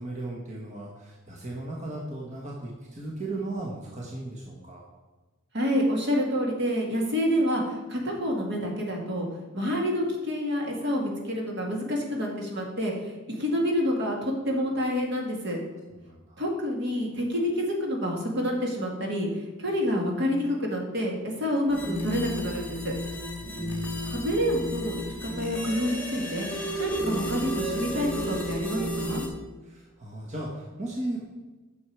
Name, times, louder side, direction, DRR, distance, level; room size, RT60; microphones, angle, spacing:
voice 1, 0.0-4.8 16.0-16.4 23.4-24.2 29.6-31.2, right 2 dB, 35° right, -2 dB, 1.2 m, -36 dB
voice 2, 5.5-9.3 9.5-15.6 16.4-22.9 24.1-24.9 25.2-29.2, equal, 60° right, 0 dB, 1.9 m, -28 dB
sound 1, 21.7-29.3, equal, 10° left, 1.5 m, -33 dB
9.3 x 6.3 x 4.6 m, 1.2 s
head